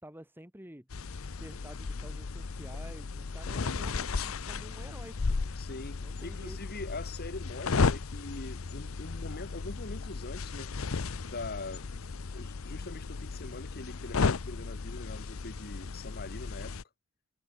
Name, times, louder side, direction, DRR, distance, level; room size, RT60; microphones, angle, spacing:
voice 1, 0.0-1.1 1.3-5.4 6.0-6.6, right 1 dB, 10° right, 4.6 m, -50 dB
sound 1, 0.9-16.8, left 4 dB, 70° left, 0.7 m, -34 dB
voice 2, 5.6-10.7 11.2-11.9 12.3-16.8, left 3 dB, 50° left, 2.1 m, -43 dB
head